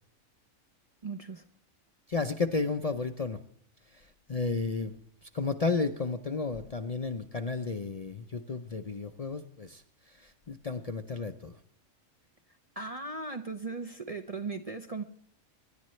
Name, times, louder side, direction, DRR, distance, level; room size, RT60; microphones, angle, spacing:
voice 1, 1.0-1.4 12.8-15.0, right 3 dB, 35° right, 0.6 m, -37 dB
voice 2, 2.1-3.4 4.3-4.9 5.3-9.8 10.2-11.6, left 4 dB, 40° left, 0.6 m, -32 dB
26.0 x 11.0 x 3.2 m
omnidirectional pair, 1.4 m